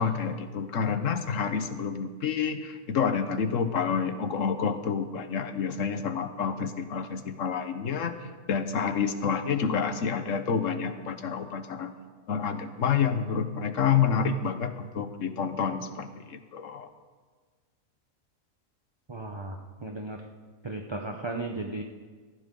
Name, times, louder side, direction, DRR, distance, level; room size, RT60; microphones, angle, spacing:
voice 1, 0.0-8.1 8.5-11.9 12.3-16.9, left 6 dB, 70° left, 9 dB, 1.3 m, -28 dB
voice 2, 19.1-20.2 20.6-21.8, right 2 dB, 25° right, 3 dB, 0.7 m, -35 dB
18.0 x 14.5 x 3.8 m, 1.5 s
omnidirectional pair, 1.4 m